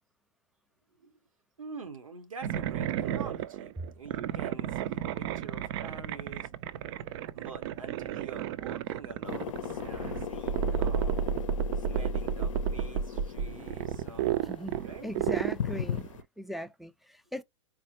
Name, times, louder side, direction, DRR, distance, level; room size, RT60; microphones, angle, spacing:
voice 1, 1.6-6.5 7.3-11.2 11.7-14.3 14.8-15.2, right 4 dB, 90° right, 1.2 m, -46 dB
sound 1, 2.4-16.2, right 9 dB, 55° right, 0.5 m, -32 dB
sound 2, 9.2-16.2, left 9 dB, 75° left, 0.5 m, -39 dB
voice 2, 14.4-16.1 16.4-17.4, equal, ahead, 0.4 m, -39 dB
4.4 x 2.1 x 2.9 m
hypercardioid pair, 105°, 17 cm